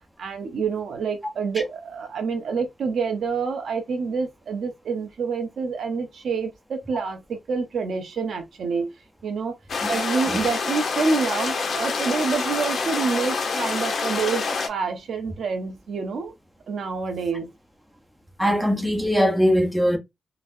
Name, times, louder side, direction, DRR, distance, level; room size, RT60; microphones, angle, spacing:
voice 1, 0.2-8.9 9.2-9.5 9.9-16.3 16.7-17.5, right 5 dB, 80° right, 0.8 m, -27 dB
sound 1, 9.7-14.7, left 4 dB, 65° left, 0.8 m, -26 dB
voice 2, 18.4-20.0, equal, ahead, 0.8 m, -20 dB
4.0 x 2.1 x 2.6 m
wide cardioid pair, 120°, 0 cm